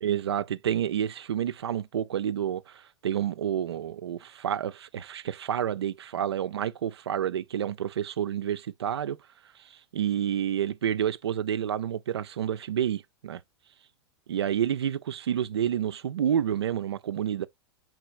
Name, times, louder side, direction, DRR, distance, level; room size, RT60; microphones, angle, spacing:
voice 1, 0.0-9.2 9.6-13.4 14.3-17.5, right 9 dB, 75° right, 0.4 m, -29 dB
4.6 x 3.9 x 2.5 m
figure-of-eight pair, 95°, 14 cm